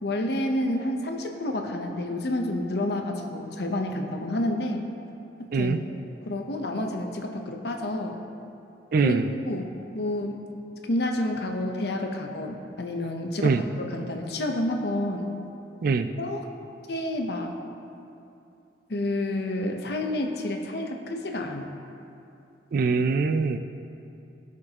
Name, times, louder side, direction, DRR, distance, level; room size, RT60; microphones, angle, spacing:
voice 1, 0.0-4.8 5.4-5.8 6.2-8.2 9.0-9.2 9.5-9.7 9.9-10.4 10.9-15.3 16.2-16.5 16.9-17.5 18.9-21.7, left 1 dB, 65° left, 3 dB, 0.8 m, -29 dB
voice 2, 8.9-9.3 13.4-13.6 15.8-16.1 22.7-23.6, right 4 dB, 55° right, 9 dB, 0.4 m, -23 dB
16.0 x 6.0 x 2.9 m, 2.7 s
head